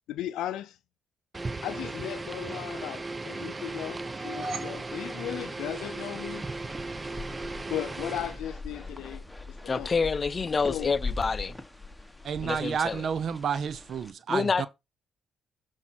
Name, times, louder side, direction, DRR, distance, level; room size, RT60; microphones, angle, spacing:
voice 1, 0.1-0.8 1.6-6.4 7.7-9.9 10.7-10.9, left 12 dB, 85° left, 0.4 m, -36 dB
sound 1, 1.3-8.4, right 3 dB, 25° right, 0.7 m, -36 dB
sound 2, 4.0-6.3, right 2 dB, 45° right, 1.8 m, -40 dB
sound 3, 5.2-14.1, left 3 dB, 5° left, 1.4 m, -42 dB
voice 2, 9.7-11.6 12.4-13.1 14.3-14.7, left 4 dB, 35° left, 0.6 m, -27 dB
voice 3, 12.2-14.7, right 7 dB, 60° right, 0.7 m, -30 dB
12.5 x 4.4 x 4.5 m
cardioid pair, 90°, 0 cm